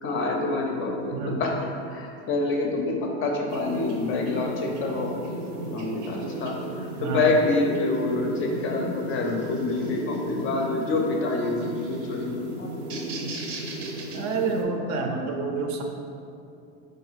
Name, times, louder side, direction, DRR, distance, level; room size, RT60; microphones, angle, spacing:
voice 1, 0.0-5.2 5.7-12.7, left 2 dB, 35° left, 1 dB, 0.5 m, -27 dB
sound 1, 3.5-14.6, right 1 dB, 85° right, 0.8 m, -35 dB
voice 2, 14.1-15.8, right 4 dB, 50° right, 2 dB, 0.5 m, -28 dB
3.8 x 2.6 x 4.0 m, 2.6 s
supercardioid pair, 125°, 37 cm